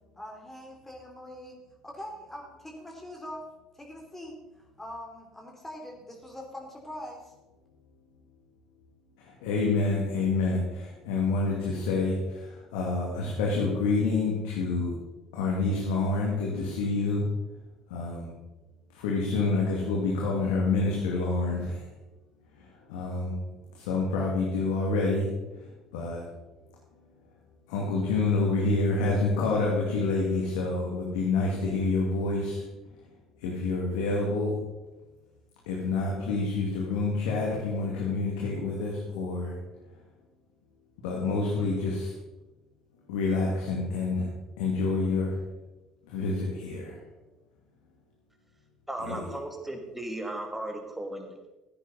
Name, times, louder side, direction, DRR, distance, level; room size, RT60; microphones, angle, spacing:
voice 1, 0.1-1.6 1.8-3.4 3.7-7.3, left 1 dB, 15° left, 0 dB, 3.2 m, -43 dB
voice 2, 9.4-12.2 12.7-14.9 15.3-17.2 17.9-18.3 19.0-21.7 22.9-23.3 23.9-25.3 25.9-26.2 27.7-32.6 33.4-34.5 35.7-39.5 41.0-42.1 43.1-44.3 44.6-45.3 46.1-46.9 49.0-49.3, left 3 dB, 75° left, -3 dB, 2.3 m, -27 dB
voice 3, 48.9-51.5, right 1 dB, 10° right, 4 dB, 2.7 m, -36 dB
15.5 x 9.9 x 4.2 m, 1.1 s
hypercardioid pair, 60°, 2 cm